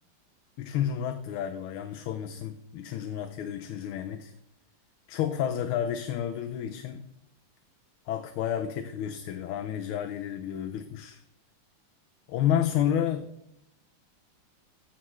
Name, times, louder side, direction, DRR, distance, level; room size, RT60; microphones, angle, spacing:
voice 1, 0.6-4.3 5.1-7.1 8.1-11.2 12.3-13.3, left 9 dB, 85° left, 7 dB, 1.5 m, -30 dB
14.5 x 6.0 x 3.1 m, 0.83 s
omnidirectional pair, 2.3 m